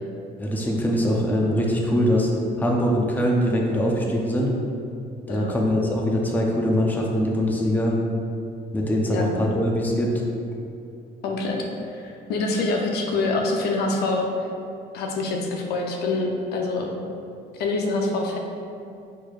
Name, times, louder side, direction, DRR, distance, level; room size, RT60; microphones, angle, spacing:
voice 1, 0.4-2.3 2.6-4.5 5.3-7.9 8.7-10.1, equal, 10° left, -2 dB, 0.6 m, -22 dB
voice 2, 11.2-14.3 14.9-17.0 17.5-18.4, left 3 dB, 75° left, 1 dB, 0.7 m, -26 dB
4.7 x 4.5 x 2.4 m, 2.6 s
cardioid pair, 110°, 17 cm